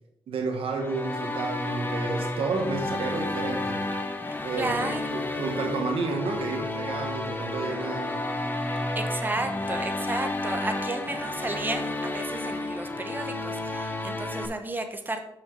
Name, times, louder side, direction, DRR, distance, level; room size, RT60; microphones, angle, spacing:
voice 1, 0.3-3.8 4.4-8.3, right 3 dB, 85° right, 3 dB, 1.4 m, -31 dB
sound 1, 0.8-14.5, left 2 dB, 20° left, 1.1 m, -31 dB
voice 2, 4.6-5.1 8.9-15.2, right 2 dB, 20° right, 6 dB, 0.9 m, -33 dB
Wind instrument woodwind instrument, 6.8-11.0, equal, 5° left, 1.0 m, -40 dB
6.3 x 6.1 x 4.5 m, 0.80 s
cardioid pair, 70°, 9 cm